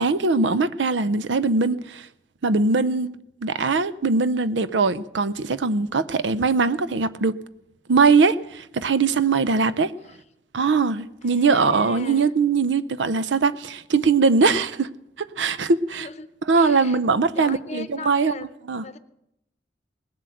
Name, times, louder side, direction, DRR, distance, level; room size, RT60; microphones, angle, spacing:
voice 1, 0.0-2.1 2.4-3.1 3.4-7.4 7.9-9.9 10.5-14.9 15.2-16.1 16.5-18.3 18.7-18.8, right 4 dB, 85° right, 0.6 m, -21 dB
voice 2, 11.2-12.3 15.9-17.0 17.3-18.5 18.8-19.0, left 4 dB, 40° left, 0.8 m, -39 dB
19.0 x 7.7 x 7.8 m
head